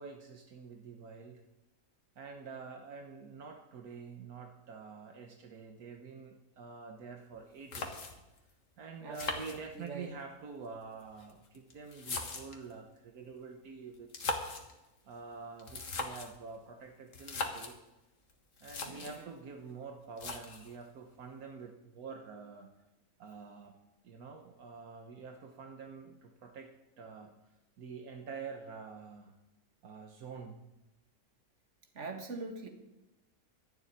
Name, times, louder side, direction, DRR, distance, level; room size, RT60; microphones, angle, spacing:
voice 1, 0.0-1.4 2.2-8.0 8.8-14.4 15.1-17.8 18.6-22.7 23.2-23.7 24.0-26.7 27.0-27.3 27.8-29.3 29.8-30.6, right 5 dB, 75° right, 3 dB, 1.6 m, -47 dB
sound 1, 7.3-7.4 7.7-8.4 9.1-10.1 11.0-12.7 14.0-14.7 15.6-16.4 17.1-17.8 18.3-18.4 18.6-19.2 20.2-20.8, left 3 dB, 55° left, 1.8 m, -39 dB
voice 2, 9.0-10.1 18.8-19.3 31.9-32.7, right 3 dB, 50° right, 4 dB, 2.0 m, -43 dB
12.5 x 7.1 x 9.5 m, 0.96 s
omnidirectional pair, 1.6 m